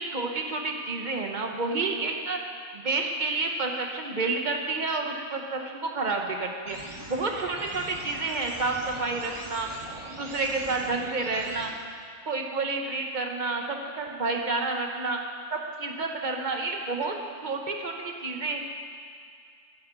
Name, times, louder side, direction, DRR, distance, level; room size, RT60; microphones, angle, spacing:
voice 1, 0.0-2.4 2.7-6.8 7.1-9.7 10.2-11.7 12.3-15.2 15.5-17.1 17.4-18.6, right 3 dB, 40° right, 2 dB, 1.0 m, -29 dB
sound 1, 6.7-11.7, right 1 dB, 25° right, 1.4 m, -42 dB
15.0 x 9.3 x 3.9 m, 2.3 s
omnidirectional pair, 1.3 m